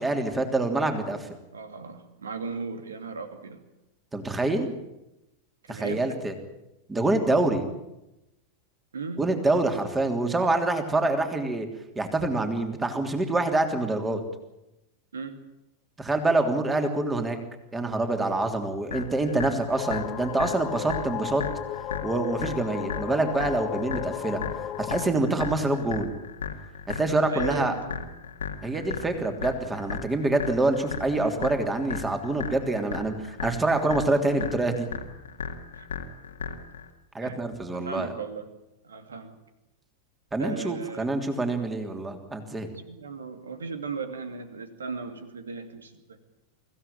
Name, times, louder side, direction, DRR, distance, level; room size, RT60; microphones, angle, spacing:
voice 1, 0.0-1.3 4.1-4.7 5.7-6.3 6.9-7.6 9.2-11.7 11.9-14.2 16.0-17.4 17.7-21.4 22.0-24.4 24.8-26.1 26.9-27.7 28.6-34.9 37.1-38.1 40.3-42.7, right 2 dB, 10° right, 6 dB, 3.2 m, -26 dB
voice 2, 1.5-3.6 5.6-6.2 8.9-9.2 15.1-15.4 27.3-28.0 35.7-35.9 37.2-37.4 37.7-38.5 38.8-39.4 40.4-41.1 42.6-46.2, right 4 dB, 70° right, 8 dB, 2.6 m, -36 dB
sound 1, 18.9-36.9, left 6 dB, 70° left, 2.0 m, -36 dB
sound 2, 19.8-25.1, left 12 dB, 30° left, 0.8 m, -35 dB
24.5 x 16.0 x 8.9 m, 0.93 s
figure-of-eight pair, 90°, 0 cm